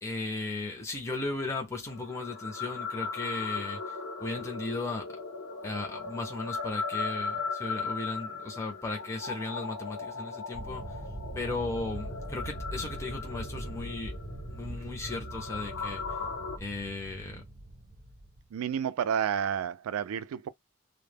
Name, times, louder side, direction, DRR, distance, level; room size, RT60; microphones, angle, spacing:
voice 1, 0.0-5.2 5.6-10.8 11.3-14.1 14.5-16.0 16.6-17.4, left 2 dB, 15° left, 0.5 m, -36 dB
sound 1, 1.9-16.6, left 4 dB, 60° left, 0.5 m, -38 dB
sound 2, 10.5-18.4, right 1 dB, 35° right, 0.7 m, -41 dB
voice 2, 18.5-20.5, right 8 dB, 85° right, 0.3 m, -30 dB
2.1 x 2.0 x 3.3 m
head